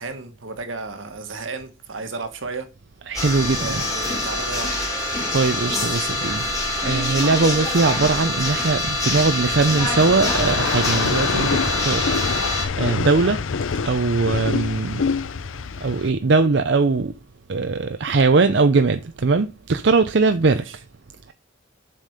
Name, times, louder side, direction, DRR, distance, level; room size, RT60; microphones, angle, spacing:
voice 1, 0.0-2.7 3.6-4.7 20.4-20.8, right 3 dB, 80° right, 1.6 m, -33 dB
sound 1, 3.1-12.6, left 1 dB, 20° left, 2.9 m, -25 dB
voice 2, 3.1-3.7 5.3-6.4 6.8-12.0 12.8-13.4 13.9-15.0 15.8-17.1 17.5-20.6, right 3 dB, 60° right, 0.6 m, -20 dB
sound 2, 5.3-16.1, left 5 dB, 80° left, 0.6 m, -27 dB
7.6 x 5.3 x 6.6 m
head